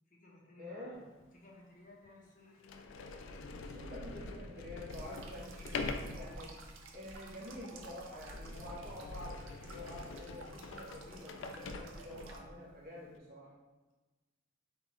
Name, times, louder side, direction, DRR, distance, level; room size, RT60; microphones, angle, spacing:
voice 1, 0.1-3.1, left 2 dB, 45° left, -3 dB, 1.0 m, -59 dB
voice 2, 0.6-1.0 3.6-6.6 6.9-13.5, left 1 dB, 50° right, -6 dB, 1.1 m, -48 dB
Sliding door, 1.2-1.3 2.0-2.1 2.6-12.5, left 3 dB, 75° left, 0.4 m, -45 dB
sound 1, 4.9-12.4, right 3 dB, 90° right, 0.5 m, -54 dB
3.8 x 3.5 x 3.1 m, 1.2 s
head